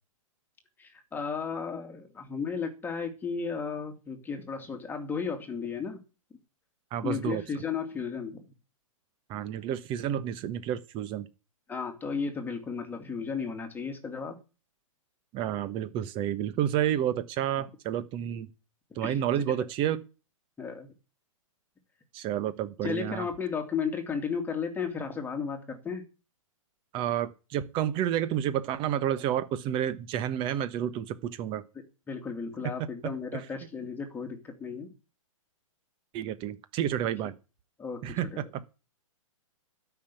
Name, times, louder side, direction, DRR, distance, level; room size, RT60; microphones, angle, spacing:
voice 1, 0.8-6.0 7.0-8.4 11.7-14.4 19.0-19.5 20.6-20.9 22.8-26.0 31.7-34.9 37.8-38.5, left 6 dB, 10° left, 2.4 m, -34 dB
voice 2, 6.9-7.4 9.3-11.3 15.3-18.5 18.9-20.0 22.1-23.3 26.9-31.6 33.3-33.4 36.1-37.3 38.0-38.8, right 10 dB, 30° right, 1.2 m, -30 dB
13.0 x 6.0 x 9.1 m
hypercardioid pair, 135°, 18 cm